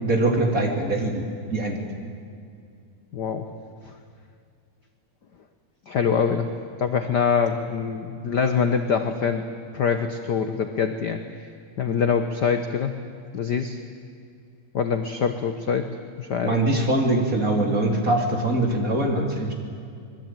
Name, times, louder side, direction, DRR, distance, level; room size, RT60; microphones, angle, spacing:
voice 1, 0.0-1.2 1.5-1.8 16.4-19.5, right 2 dB, 25° right, 1 dB, 3.3 m, -22 dB
voice 2, 3.1-3.5 3.8-3.9 5.9-6.5 6.8-9.5 9.7-11.2 11.8-12.9 13.3-13.8 14.7-16.6, left 6 dB, 65° left, 7 dB, 1.0 m, -24 dB
25.5 x 21.0 x 9.1 m, 2.3 s
omnidirectional pair, 3.4 m